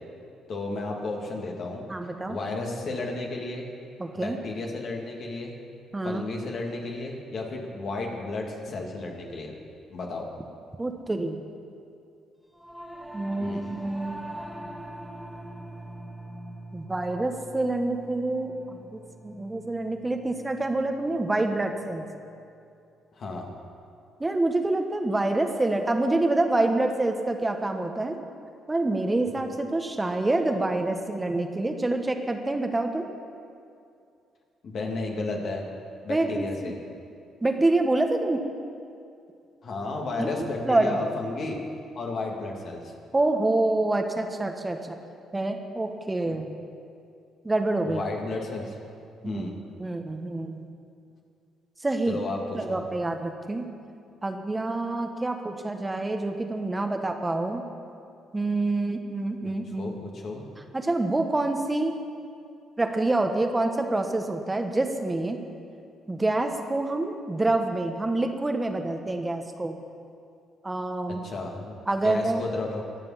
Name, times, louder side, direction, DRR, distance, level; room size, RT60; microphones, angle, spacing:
voice 1, 0.5-1.8 2.3-3.7 4.1-5.5 6.0-9.5 9.9-10.3 13.4-13.7 23.2-23.5 34.6-35.6 36.0-36.8 39.6-41.6 41.9-42.9 46.2-46.3 47.8-48.8 49.2-49.5 52.1-52.4 52.7-52.8 59.4-60.4 71.2-71.7 72.0-72.8, left 3 dB, 55° left, 0 dB, 2.5 m, -33 dB
voice 2, 1.9-2.4 4.0-4.4 5.9-6.2 10.8-11.4 13.1-14.2 16.7-18.5 18.9-22.0 24.2-28.2 28.7-33.1 36.1-36.7 37.4-38.4 40.2-41.0 43.1-45.0 45.3-46.5 47.4-48.0 49.2-49.5 49.8-50.6 51.8-52.2 52.5-53.7 54.2-57.6 58.3-59.9 60.7-62.0 62.8-65.4 66.1-69.8 70.6-71.2 71.9-72.4, right 2 dB, 20° right, 5 dB, 1.3 m, -27 dB
Singing / Musical instrument, 12.5-22.1, right 1 dB, 5° right, 2.1 m, -43 dB
22.5 x 7.5 x 5.9 m, 2.5 s
hypercardioid pair, 50°, 0 cm